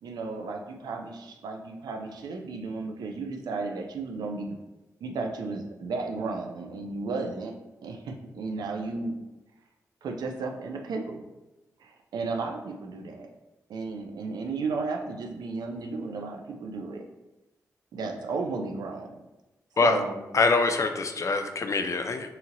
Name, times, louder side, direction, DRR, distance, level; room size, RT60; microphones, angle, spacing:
voice 1, 0.0-4.6 5.0-7.5 7.8-9.2 10.0-11.2 11.8-13.3 13.7-17.0 17.9-19.1 19.8-20.2, right 3 dB, 80° right, 3 dB, 0.4 m, -34 dB
voice 2, 20.3-22.3, left 4 dB, 50° left, 6 dB, 0.4 m, -24 dB
2.8 x 2.7 x 2.5 m, 1.0 s
supercardioid pair, 45°, 7 cm